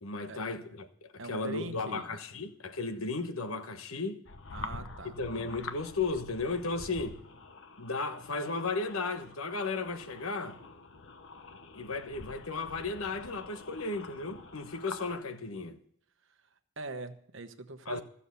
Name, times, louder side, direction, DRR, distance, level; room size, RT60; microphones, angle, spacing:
voice 1, 0.0-4.2 5.1-7.2 7.8-10.6 11.7-15.7 17.9-18.0, left 3 dB, 80° left, 1.2 m, -35 dB
voice 2, 1.2-2.1 4.5-5.1 16.2-18.0, right 2 dB, 60° right, 1.1 m, -43 dB
sound 1, 4.3-15.2, left 3 dB, 60° left, 1.0 m, -47 dB
15.0 x 7.1 x 6.9 m
head